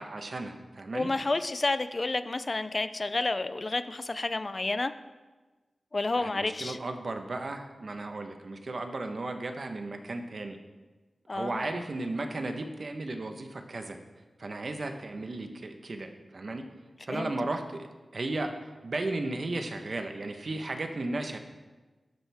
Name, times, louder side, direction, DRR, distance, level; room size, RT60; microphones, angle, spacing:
voice 1, 0.0-1.1 6.2-10.6 11.3-14.0 14.4-16.6 17.0-21.4, right 2 dB, 55° right, 5 dB, 1.1 m, -35 dB
voice 2, 0.9-4.9 5.9-6.8 11.3-11.8 17.1-17.3, left 2 dB, 40° left, 11 dB, 0.5 m, -30 dB
12.0 x 11.0 x 3.6 m, 1.3 s
wide cardioid pair, 85°, 0 cm